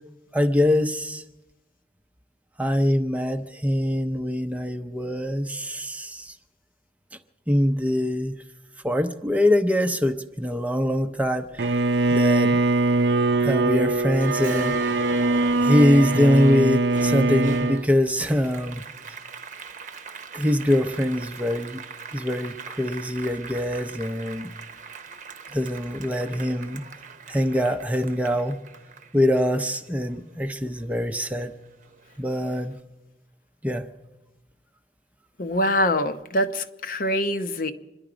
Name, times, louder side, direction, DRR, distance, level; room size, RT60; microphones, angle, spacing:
voice 1, 0.3-1.2 2.6-6.4 7.5-8.4 8.8-11.7 12.1-12.6 13.4-14.9 15.6-18.8 20.3-21.8 22.1-24.5 25.5-26.8 27.3-28.6 29.1-31.5 32.2-32.8 33.6-33.9, left 1 dB, 10° right, 7 dB, 0.6 m, -23 dB
Bowed string instrument, 11.6-17.9, right 2 dB, 70° right, 0.7 m, -22 dB
Applause, 14.2-31.0 31.4-32.6, right 4 dB, 45° right, 0.9 m, -41 dB
voice 2, 35.4-37.7, left 1 dB, 50° left, 9 dB, 0.8 m, -24 dB
26.0 x 11.0 x 5.0 m, 1.0 s
head